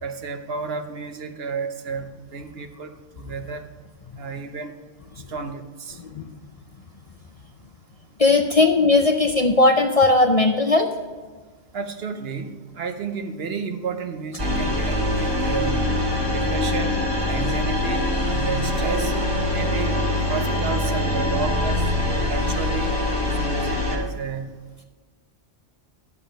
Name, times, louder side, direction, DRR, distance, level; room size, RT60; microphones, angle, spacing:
voice 1, 0.0-3.7 4.2-4.7 5.3-6.0 11.7-15.9 16.3-17.0 17.3-19.1 19.5-19.9 20.3-21.8 22.3-24.6, right 5 dB, 60° right, 7 dB, 1.0 m, -32 dB
voice 2, 8.2-10.9, left 3 dB, 40° left, 4 dB, 0.6 m, -17 dB
sound 1, 14.4-24.0, left 1 dB, 35° right, 2.0 m, -23 dB
11.0 x 7.3 x 5.0 m, 1.4 s
omnidirectional pair, 1.2 m